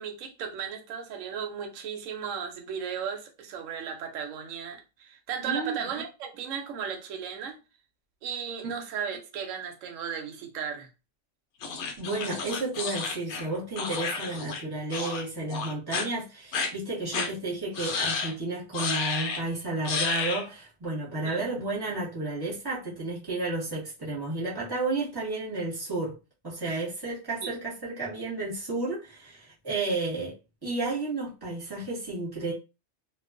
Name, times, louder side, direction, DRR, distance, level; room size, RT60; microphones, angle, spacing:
voice 1, 0.0-7.6 8.2-10.9 21.2-21.4 27.4-27.5, right 7 dB, 80° right, 0.9 m, -35 dB
voice 2, 5.4-5.8 8.6-8.7 12.0-26.1 26.4-30.4 30.6-32.5, right 2 dB, 20° right, 1.0 m, -32 dB
sound 1, 11.6-14.6 14.9-15.2 15.5-16.0 16.5-16.7 17.1-17.3 17.7-18.3 18.7-19.4 19.8-20.4, left 5 dB, 70° left, 0.9 m, -31 dB
2.3 x 2.3 x 2.4 m
omnidirectional pair, 1.3 m